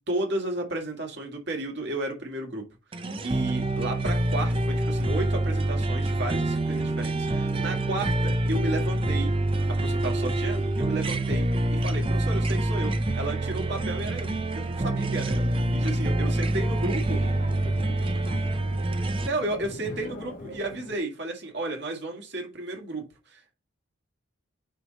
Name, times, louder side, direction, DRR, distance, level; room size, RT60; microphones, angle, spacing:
voice 1, 0.0-2.6 2.9-9.3 9.7-17.2 19.2-23.5, right 2 dB, 50° right, 1.8 m, -33 dB
sound 1, 2.9-19.3, right 1 dB, 25° right, 0.5 m, -26 dB
sound 2, 15.4-21.0, left 2 dB, 40° left, 0.9 m, -42 dB
voice 2, 16.6-19.5 20.0-20.2 20.5-20.6, right 2 dB, 85° right, 4.2 m, -48 dB
9.1 x 3.5 x 4.0 m
head